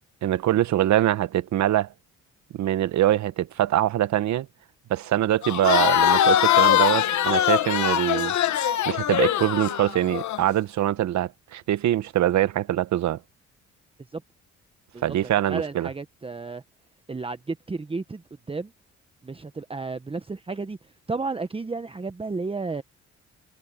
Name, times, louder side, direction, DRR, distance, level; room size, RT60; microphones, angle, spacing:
voice 1, 0.2-1.9 2.5-4.5 4.9-8.3 8.9-13.2 15.0-15.9, right 12 dB, 65° right, 1.0 m, -23 dB
Crowd, 5.4-10.4, left 11 dB, 70° left, 1.3 m, -22 dB
voice 2, 14.9-16.6 17.1-18.7 19.2-22.8, right 3 dB, 20° right, 1.0 m, -33 dB
cardioid pair, 90°, 30 cm